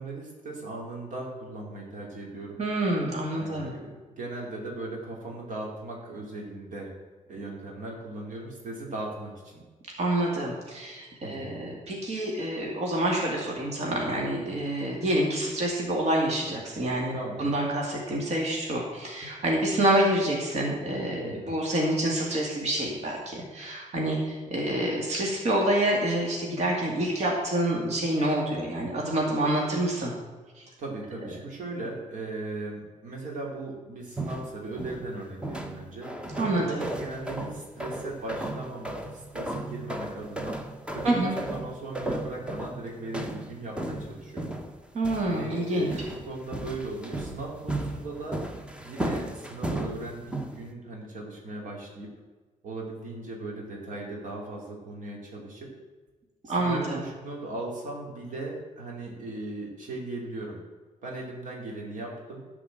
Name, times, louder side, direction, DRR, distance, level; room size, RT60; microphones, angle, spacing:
voice 1, 0.0-2.6 3.3-3.9 4.2-6.9 7.3-9.6 11.2-11.5 17.1-17.5 21.2-21.6 30.8-36.1 36.5-40.6 40.9-44.5 45.3-48.4 48.8-52.1 52.6-55.7 56.4-60.6 61.0-62.4, right 2 dB, 75° right, -1 dB, 2.7 m, -38 dB
voice 2, 2.6-3.7 10.0-30.1 30.6-30.7 36.4-36.8 41.0-41.3 44.9-45.9 56.5-57.0, right 1 dB, 55° right, -2 dB, 2.4 m, -27 dB
sound 1, 34.2-35.2 35.4-50.7, right 1 dB, 10° right, 0.9 m, -35 dB
12.5 x 4.9 x 7.7 m, 1.3 s
wide cardioid pair, 140°, 13 cm